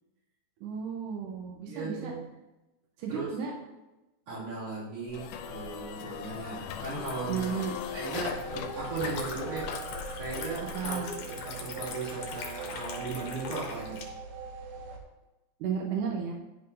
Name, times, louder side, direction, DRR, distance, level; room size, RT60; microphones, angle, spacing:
voice 1, 0.6-2.1 3.0-3.5 7.3-7.7 10.7-11.1 15.6-16.3, right 6 dB, 90° right, 0 dB, 2.3 m, -33 dB
voice 2, 1.7-2.3 3.1-3.3 4.3-7.6 7.9-9.8 10.2-14.0, right 3 dB, 55° right, -7 dB, 3.3 m, -37 dB
sound 1, 5.1-10.9, left 8 dB, 85° left, 2.1 m, -39 dB
Liquid, 5.7-14.0, left 5 dB, 70° left, 1.9 m, -43 dB
sound 2, 8.1-15.0, right 4 dB, 70° right, 2.0 m, -42 dB
11.0 x 5.3 x 2.6 m, 1.0 s
omnidirectional pair, 3.6 m